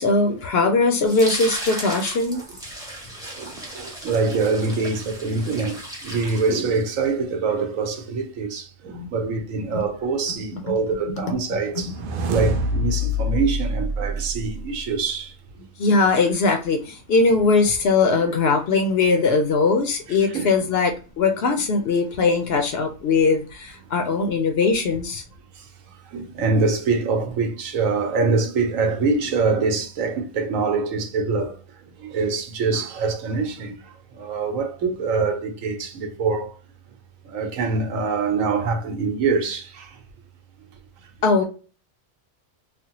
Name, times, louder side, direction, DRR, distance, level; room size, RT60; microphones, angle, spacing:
voice 1, 0.0-2.4 9.7-9.9 10.7-10.8 11.1-11.4 15.8-25.2 41.2-41.4, left 4 dB, 60° left, 0.7 m, -20 dB
sound 1, 1.0-7.1, right 1 dB, 5° right, 0.7 m, -35 dB
voice 2, 3.4-15.3 20.1-20.5 26.1-31.6 32.0-36.5 37.3-39.9, right 4 dB, 85° right, 1.1 m, -24 dB
sound 2, 11.7-14.9, left 1 dB, 65° right, 0.5 m, -26 dB
3.3 x 2.1 x 2.8 m
omnidirectional pair, 1.3 m